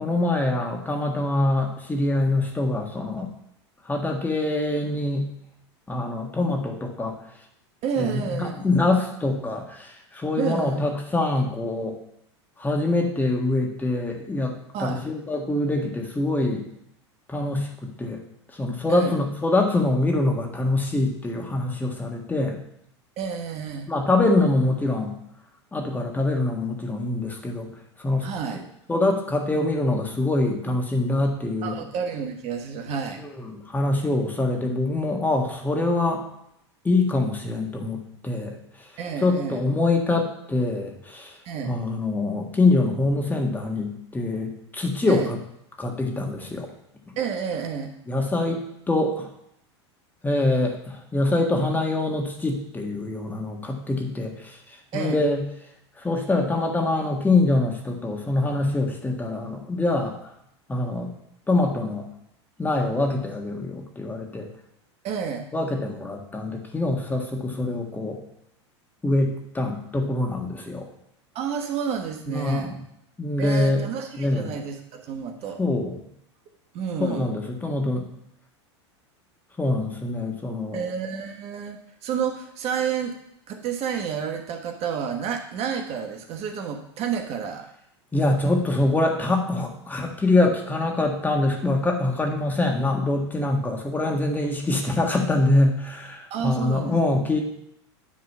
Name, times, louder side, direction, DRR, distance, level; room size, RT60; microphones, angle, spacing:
voice 1, 0.0-3.3 3.9-5.3 5.9-7.2 8.0-12.0 12.6-16.6 17.3-18.2 18.6-22.6 23.9-25.1 25.7-27.7 28.0-28.3 28.9-31.7 33.2-36.2 36.9-38.5 39.2-41.3 41.6-45.4 45.8-46.7 48.1-49.3 50.2-54.3 54.9-55.4 56.0-60.2 60.7-61.1 61.5-62.1 62.6-64.5 65.5-68.2 69.0-70.9 72.3-72.6 73.2-73.8 74.2-74.5 75.6-76.0 77.0-78.0 79.6-80.8 88.1-97.4, left 2 dB, 10° left, 1 dB, 1.7 m, -24 dB
voice 2, 7.8-8.7 10.4-10.8 14.7-15.0 18.9-19.2 23.2-23.9 28.2-28.6 31.6-33.2 39.0-39.6 41.4-41.7 45.1-45.3 47.2-47.9 54.9-55.2 65.0-65.5 71.3-72.7 73.4-75.6 76.7-77.3 80.7-83.1 83.5-87.7 96.3-97.0, right 7 dB, 45° right, 4 dB, 1.2 m, -30 dB
10.0 x 3.8 x 6.0 m, 0.75 s
hypercardioid pair, 100°, 15 cm